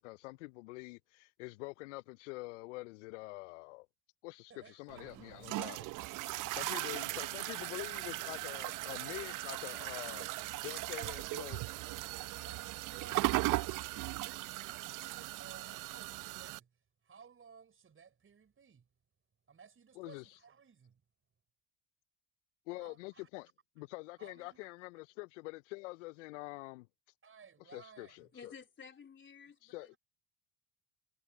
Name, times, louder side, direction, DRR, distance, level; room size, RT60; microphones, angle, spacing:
voice 1, 0.0-3.9 4.2-5.9 6.5-10.2 10.6-11.6 20.0-20.2 22.7-23.5 23.8-26.9 27.7-28.5 29.6-30.0, left 23 dB, 85° left, 0.5 m, -46 dB
voice 2, 4.5-5.0 6.4-7.3 10.9-11.6 12.4-16.8 17.0-18.9 19.5-21.0 22.8-23.3 24.2-24.7 27.2-28.4 29.7-29.9, right 6 dB, 35° right, 5.8 m, -58 dB
sound 1, 4.9-16.6, right 19 dB, 60° right, 0.7 m, -38 dB
voice 3, 28.3-30.0, left 6 dB, 35° left, 3.6 m, -53 dB
hypercardioid pair, 70°, 35 cm